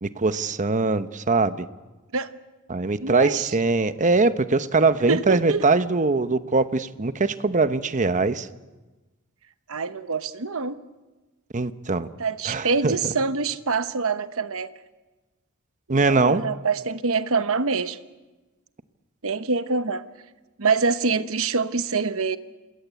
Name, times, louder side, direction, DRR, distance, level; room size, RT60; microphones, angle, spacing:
voice 1, 0.0-1.7 2.7-8.5 11.5-12.1 12.4-13.0 15.9-16.4, right 3 dB, 35° right, 12 dB, 0.9 m, -22 dB
voice 2, 3.0-3.5 5.1-5.7 9.7-10.8 12.2-14.7 15.9-18.0 19.2-20.0 20.6-22.4, right 4 dB, 65° right, 11 dB, 1.1 m, -25 dB
28.0 x 21.0 x 8.3 m, 1.2 s
head